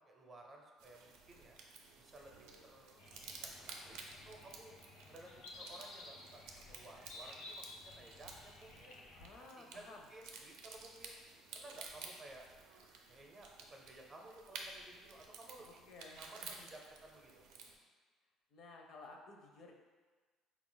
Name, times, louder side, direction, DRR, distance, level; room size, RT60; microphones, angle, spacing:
voice 1, 0.1-1.6 2.0-4.0 4.3-4.7 5.1-5.3 5.6-6.4 6.7-9.0 9.4-11.2 11.5-12.4 13.1-15.9 16.2-17.4, right 2 dB, 25° right, 0 dB, 0.6 m, -56 dB
sound 1, 0.8-17.7, right 4 dB, 85° right, 0.5 m, -54 dB
sound 2, 3.0-9.3, left 2 dB, 80° left, 0.8 m, -54 dB
voice 2, 9.1-10.0 15.6-16.7 18.5-19.7, left 3 dB, 55° left, 2 dB, 0.5 m, -55 dB
4.4 x 2.4 x 3.8 m, 1.4 s
cardioid pair, 135°, 0 cm